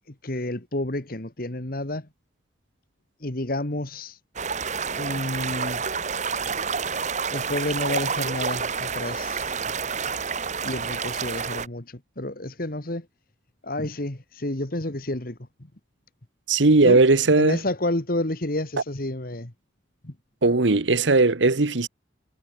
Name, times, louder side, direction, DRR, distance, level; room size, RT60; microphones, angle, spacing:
voice 1, 0.1-2.1 3.2-4.2 5.0-5.9 7.3-9.7 10.6-13.1 13.6-15.4 16.8-17.0 17.4-19.5 20.0-20.1, left 1 dB, 50° left, 2.0 m, -30 dB
sound 1, 4.4-11.7, right 5 dB, 40° right, 1.5 m, -29 dB
voice 2, 16.5-17.6 20.4-21.9, right 3 dB, 75° right, 1.2 m, -18 dB
head